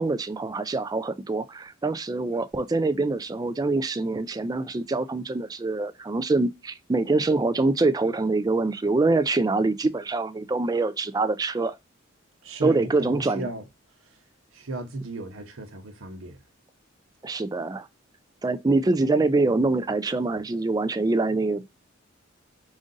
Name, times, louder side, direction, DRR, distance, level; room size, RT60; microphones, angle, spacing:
voice 1, 0.0-11.7 12.6-13.5 17.2-17.9 18.4-21.7, right 3 dB, 20° right, 0.4 m, -25 dB
voice 2, 12.4-13.6 14.0-14.2 14.5-16.4, right 2 dB, 75° right, 0.8 m, -35 dB
5.0 x 2.6 x 3.7 m
head